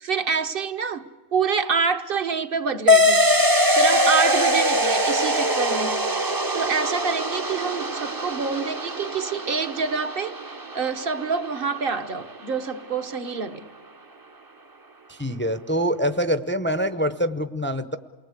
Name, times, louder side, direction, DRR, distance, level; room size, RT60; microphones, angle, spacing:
voice 1, 0.0-1.0 1.3-3.2 3.7-6.0 6.5-10.3 10.7-13.7, right 5 dB, 50° right, 1.2 m, -26 dB
sound 1, 2.9-11.9, left 1 dB, 20° right, 0.7 m, -22 dB
voice 2, 15.1-18.0, equal, 10° left, 0.6 m, -25 dB
28.5 x 20.0 x 8.2 m
omnidirectional pair, 1.2 m